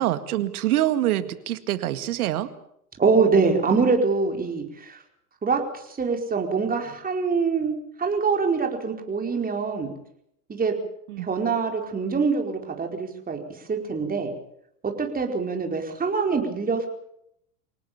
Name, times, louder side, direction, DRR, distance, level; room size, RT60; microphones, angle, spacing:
voice 1, 0.0-2.5 11.1-11.3, right 13 dB, 70° right, 12 dB, 2.0 m, -25 dB
voice 2, 3.0-5.0 5.4-9.9 10.5-10.8 11.2-13.4 13.7-14.3 14.8-16.9, right 4 dB, 20° right, 3 dB, 4.8 m, -24 dB
25.5 x 18.5 x 7.0 m, 0.74 s
hypercardioid pair, 95°, 46 cm